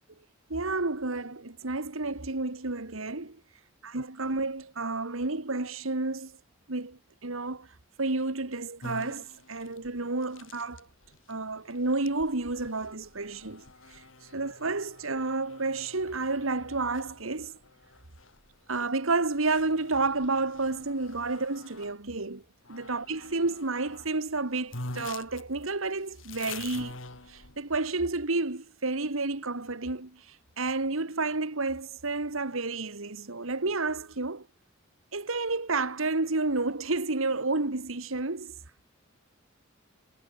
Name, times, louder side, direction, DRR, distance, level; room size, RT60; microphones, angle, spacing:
voice 1, 0.5-3.4 3.8-6.3 6.7-7.7 8.0-10.9 11.3-13.6 13.9-14.0 14.3-17.5 18.7-22.4 22.7-27.0 27.3-34.5 35.1-38.6, right 3 dB, 90° right, 1.9 m, -30 dB
sound 1, 8.8-22.0 22.6-24.1 24.4-24.5 24.7-27.8, left 3 dB, 70° left, 5.6 m, -47 dB
head